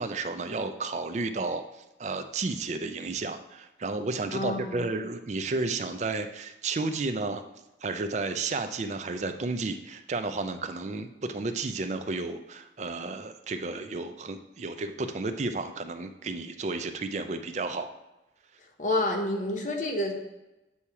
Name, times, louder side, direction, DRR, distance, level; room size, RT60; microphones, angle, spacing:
voice 1, 0.0-7.4 7.8-17.9, right 3 dB, 40° right, 8 dB, 0.4 m, -32 dB
voice 2, 4.3-4.9 18.8-20.1, left 1 dB, 45° left, 2 dB, 0.9 m, -29 dB
8.4 x 2.9 x 4.7 m, 0.99 s
head